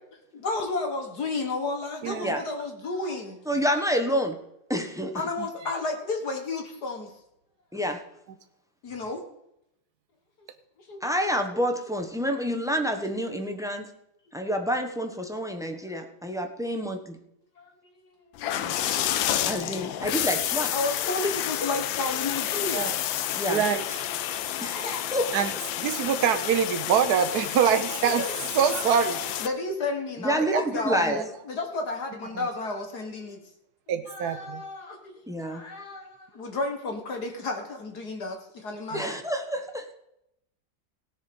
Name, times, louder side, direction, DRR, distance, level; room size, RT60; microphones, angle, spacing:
voice 1, 0.3-3.4 5.1-7.1 8.8-9.2 10.9-11.1 11.5-11.6 13.0-13.1 14.4-14.5 15.8-15.9 17.6-17.7 18.3-18.4 18.8-19.0 19.9-20.1 20.7-23.0 24.6-25.3 27.9-28.3 28.7-33.4 34.1-35.2 35.5-39.2, left 3 dB, 55° left, 4 dB, 2.0 m, -32 dB
voice 2, 2.0-2.4 18.6-18.7 22.7-23.0 23.5-24.0 25.3-25.5 25.8-28.2 28.5-29.2 30.5-30.6 30.9-31.2 32.3-32.5 33.9-34.6 38.9-39.0, right 7 dB, 65° right, 8 dB, 1.2 m, -25 dB
voice 3, 3.5-4.3 4.7-5.1 7.7-8.0 11.0-13.9 14.3-17.2 19.5-20.7 23.3-23.6 24.6-24.8 25.1-25.3 30.2-31.2 35.3-35.6 38.9-40.0, equal, ahead, 5 dB, 0.8 m, -28 dB
sound 1, 18.4-29.5, left 11 dB, 80° left, 1.4 m, -30 dB
17.5 x 7.0 x 5.3 m, 0.81 s
omnidirectional pair, 2.1 m